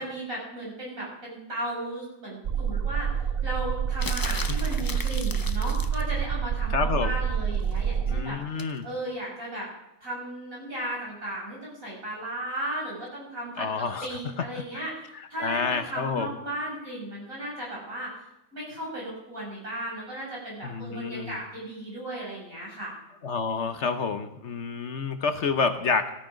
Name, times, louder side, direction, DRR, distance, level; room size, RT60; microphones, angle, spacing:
voice 1, 0.0-3.1 3.4-9.7 10.0-18.1 18.5-22.9, right 1 dB, 70° right, -4 dB, 8.1 m, -36 dB
sound 1, 2.4-8.2, right 7 dB, 55° right, 0.7 m, -27 dB
sound 2, 4.0-6.1 8.6-8.8, left 3 dB, 25° left, 0.5 m, -36 dB
voice 2, 6.7-7.1 8.1-8.8 13.6-14.2 14.5-14.6 15.4-16.4 20.6-21.4 23.2-26.1, left 5 dB, 55° left, 8 dB, 1.2 m, -29 dB
17.0 x 13.0 x 5.2 m, 0.88 s
omnidirectional pair, 1.5 m